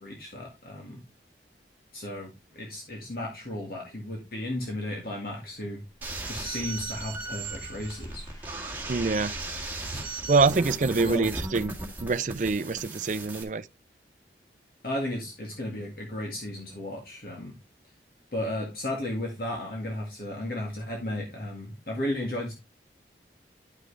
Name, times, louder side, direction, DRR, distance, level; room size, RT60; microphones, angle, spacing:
voice 1, 0.0-1.0 1.9-5.8 6.3-8.2 11.0-11.3 14.8-17.6 18.3-22.5, left 1 dB, 55° left, 2.0 m, -34 dB
sound 1, 6.0-13.4, right 2 dB, 10° right, 1.8 m, -37 dB
sound 2, 6.4-10.1, equal, 20° left, 2.8 m, -48 dB
voice 2, 8.9-9.3 10.3-13.6, right 4 dB, 45° right, 0.4 m, -25 dB
10.5 x 6.2 x 3.2 m
head